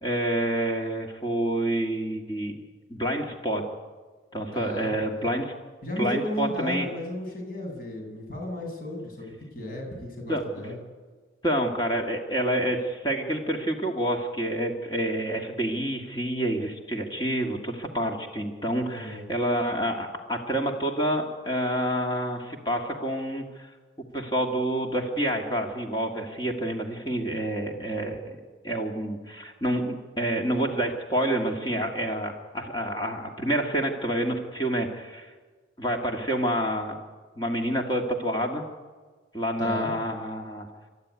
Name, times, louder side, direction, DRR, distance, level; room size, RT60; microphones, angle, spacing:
voice 1, 0.0-2.6 2.9-3.6 4.3-5.5 6.0-6.9 10.3-10.4 11.4-23.7 24.1-28.4 28.6-35.3 35.8-37.0 37.4-38.6 39.3-40.7, right 1 dB, 20° left, 1 dB, 2.0 m, -28 dB
voice 2, 4.5-4.9 5.8-10.8 18.8-19.2 39.6-39.9, left 1 dB, 45° left, 0 dB, 7.8 m, -34 dB
29.0 x 13.0 x 9.7 m, 1.4 s
head